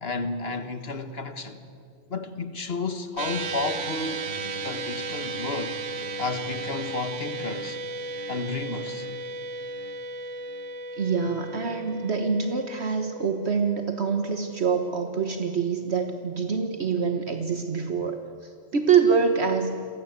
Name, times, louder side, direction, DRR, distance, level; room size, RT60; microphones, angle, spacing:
voice 1, 0.0-1.6 2.1-4.2 4.6-5.8 6.2-7.8 8.3-9.1, left 3 dB, 55° left, 1.7 m, -32 dB
sound 1, 3.2-15.7, right 3 dB, 85° right, 1.4 m, -35 dB
voice 2, 10.9-19.8, right 6 dB, 60° right, 1.5 m, -25 dB
29.5 x 23.0 x 8.2 m
omnidirectional pair, 1.2 m